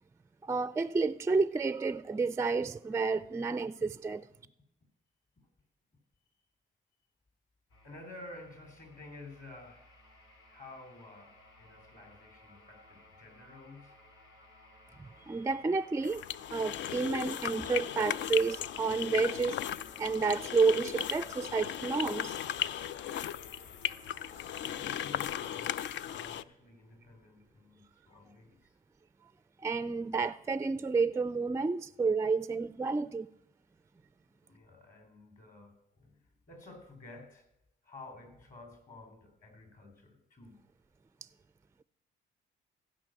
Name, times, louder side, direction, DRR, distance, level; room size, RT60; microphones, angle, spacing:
voice 1, 0.4-4.3 15.0-16.2 16.5-19.6 20.0-22.4 29.6-33.3, right 4 dB, 15° right, 0.4 m, -30 dB
sound 1, 7.7-24.9, left 1 dB, 80° left, 3.0 m, -58 dB
voice 2, 7.8-9.9 10.5-14.0 24.6-28.6 34.4-36.2 36.5-37.5 37.8-40.6, left 2 dB, 40° left, 3.7 m, -52 dB
sound 2, 16.0-26.4, left 10 dB, 65° left, 0.4 m, -37 dB
15.5 x 5.2 x 7.7 m
cardioid pair, 90°, 20 cm